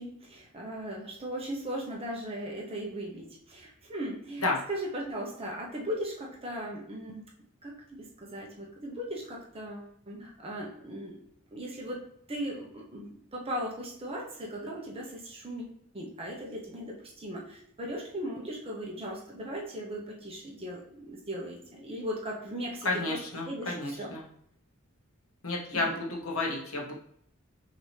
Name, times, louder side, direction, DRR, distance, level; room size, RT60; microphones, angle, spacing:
voice 1, 0.0-7.3 7.6-11.2 11.5-15.7 15.9-23.2 23.4-24.1 25.7-26.0, equal, 30° right, -2 dB, 0.9 m, -38 dB
voice 2, 22.8-24.2 25.4-26.9, left 2 dB, 80° left, 0 dB, 1.0 m, -31 dB
5.3 x 2.7 x 3.3 m, 0.67 s
head